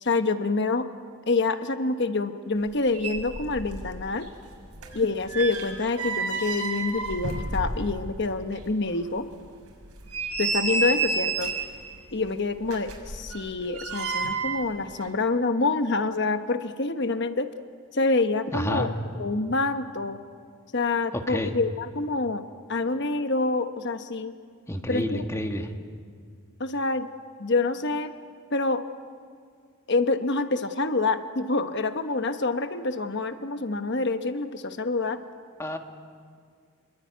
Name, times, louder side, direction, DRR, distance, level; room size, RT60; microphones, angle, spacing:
voice 1, 0.0-0.9 1.3-4.3 4.9-9.2 10.4-11.5 12.1-17.5 17.9-20.2 20.7-22.4 22.7-24.3 24.9-25.2 26.6-27.1 27.4-28.1 28.5-28.8 29.9-35.2, left 3 dB, 50° left, 8 dB, 1.1 m, -27 dB
sound 1, 2.7-2.8 2.9-3.9 4.2-8.2 8.5-8.6 9.2-9.3 9.8-11.8 12.6-14.6 14.9-15.1, right 4 dB, 90° right, 6.0 m, -30 dB
voice 2, 18.5-18.9 21.1-21.5 24.7-25.7 35.6-35.8, left 1 dB, 15° left, 4 dB, 1.7 m, -29 dB
27.5 x 22.0 x 9.4 m, 2.1 s
head